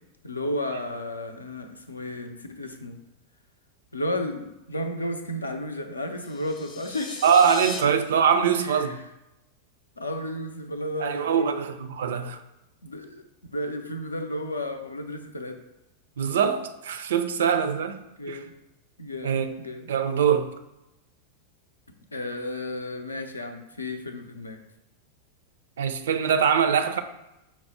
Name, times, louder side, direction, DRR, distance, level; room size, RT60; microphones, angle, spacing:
voice 1, 0.2-3.0 3.9-7.2 8.6-8.9 10.0-11.7 12.2-12.3 12.8-13.2 13.5-15.6 18.2-18.5 19.0-19.9 22.1-24.6, left 1 dB, 80° left, 6 dB, 0.5 m, -33 dB
sound 1, 6.2-7.8, left 4 dB, 30° left, 0.6 m, -38 dB
voice 2, 7.2-9.0 11.0-12.4 16.2-18.0 18.3-18.4 19.2-19.5 19.9-20.5 25.8-27.0, right 7 dB, 60° right, 8 dB, 0.4 m, -23 dB
5.8 x 2.0 x 4.3 m, 0.92 s
figure-of-eight pair, 90°, 0 cm